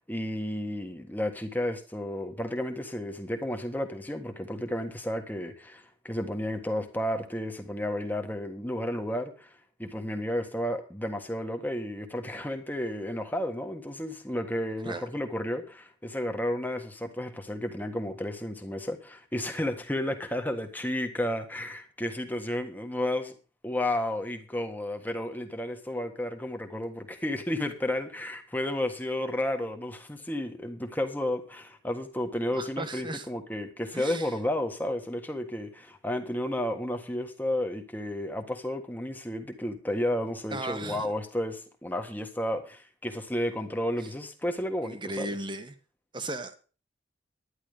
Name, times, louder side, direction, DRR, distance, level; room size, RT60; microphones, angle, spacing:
voice 1, 0.1-9.5 9.8-23.3 23.6-45.3, left 1 dB, 10° left, 1.5 m, -32 dB
voice 2, 32.5-33.3 33.9-34.3 40.5-41.1 44.0-44.1 44.8-45.7 46.1-46.6, right 2 dB, 25° right, 1.3 m, -36 dB
11.5 x 10.5 x 5.0 m
head